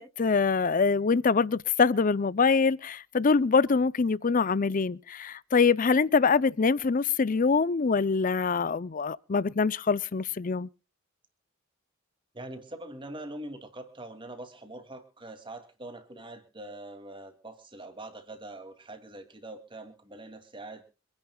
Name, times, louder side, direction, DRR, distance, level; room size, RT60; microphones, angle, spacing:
voice 1, 0.0-10.7, left 5 dB, 40° left, 0.5 m, -24 dB
voice 2, 12.3-20.9, right 1 dB, 25° right, 2.5 m, -43 dB
26.0 x 10.5 x 2.3 m
head